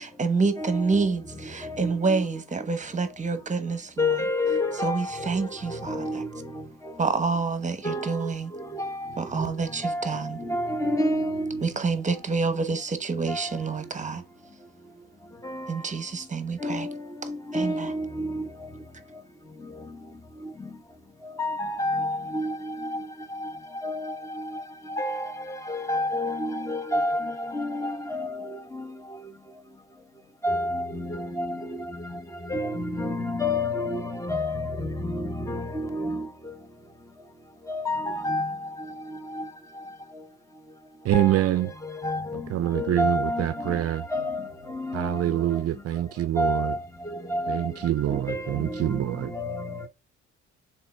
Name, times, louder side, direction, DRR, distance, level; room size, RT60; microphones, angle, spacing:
voice 1, 0.0-4.2 4.8-6.2 7.0-8.5 9.2-10.4 11.6-14.2 15.7-16.9 17.5-17.9, right 4 dB, 25° right, 1.1 m, -28 dB
voice 2, 0.6-1.1 1.4-2.2 4.0-7.1 7.8-11.7 13.3-13.6 15.4-15.8 16.6-18.7 19.6-20.0 20.4-20.7 21.2-29.2 30.4-36.5 37.7-39.8 41.1-45.6 46.4-49.9, left 1 dB, 10° left, 1.0 m, -30 dB
voice 3, 41.0-41.7 42.5-44.1 44.9-46.7 47.5-49.3, right 12 dB, 50° right, 0.5 m, -25 dB
5.8 x 3.9 x 4.4 m
cardioid pair, 85°, 30 cm